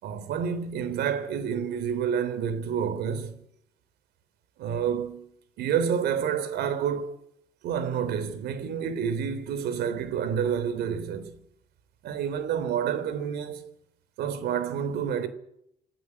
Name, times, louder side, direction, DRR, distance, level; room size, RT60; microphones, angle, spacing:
voice 1, 0.0-3.4 4.6-5.3 5.6-7.2 7.6-11.4 12.0-13.7 14.2-15.3, right 8 dB, 75° right, 3.6 m, -29 dB
26.5 x 14.5 x 9.7 m
cardioid pair, 110°, 17 cm